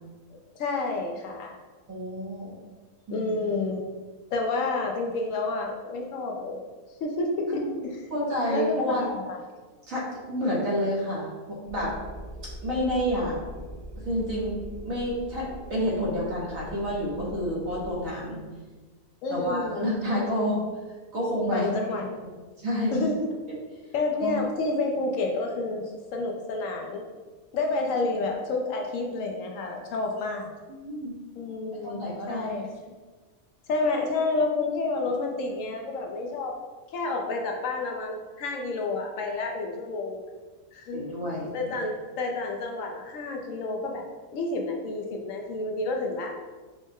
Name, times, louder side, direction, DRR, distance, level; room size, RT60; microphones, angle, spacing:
voice 1, 0.6-1.6 3.1-3.8 4.3-6.6 7.0-8.0 8.5-9.4 19.2-20.4 21.5-22.1 22.9-23.2 23.9-25.8 26.1-27.0 27.5-30.5 31.4-32.7 33.7-36.5 36.9-40.2 40.7-41.0 41.5-44.0 44.3-46.3, left 3 dB, 70° left, 1 dB, 0.9 m, -29 dB
voice 2, 1.9-2.6 3.1-3.3 7.5-7.8 8.1-9.0 9.9-12.0 12.4-13.4 13.9-18.4 19.3-20.6 21.1-21.6 22.6-23.0 24.2-24.3 30.7-31.1 31.8-32.6 40.9-41.5, equal, 70° right, -5 dB, 1.6 m, -29 dB
sound 1, 11.6-17.9, equal, 45° left, 1.2 m, -42 dB
5.2 x 2.0 x 3.5 m, 1.3 s
omnidirectional pair, 1.5 m